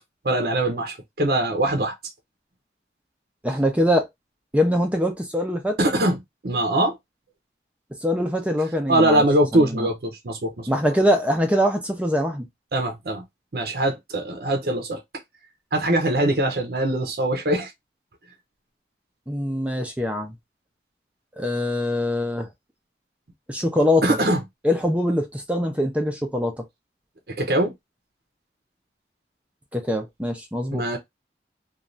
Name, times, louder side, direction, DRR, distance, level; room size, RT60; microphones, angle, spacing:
voice 1, 0.2-1.9 5.8-6.2 6.4-6.9 8.9-10.7 12.7-13.2 13.5-15.0 15.7-17.7 24.0-24.4 27.3-27.7 30.7-31.0, right 1 dB, 55° right, 0.6 m, -22 dB
voice 2, 3.4-4.1 4.5-5.8 8.0-9.2 9.5-9.9 10.7-12.5 19.3-20.3 21.4-22.5 23.5-24.2 24.6-26.5 29.7-30.8, left 1 dB, 5° right, 0.5 m, -23 dB
3.1 x 2.3 x 2.5 m
head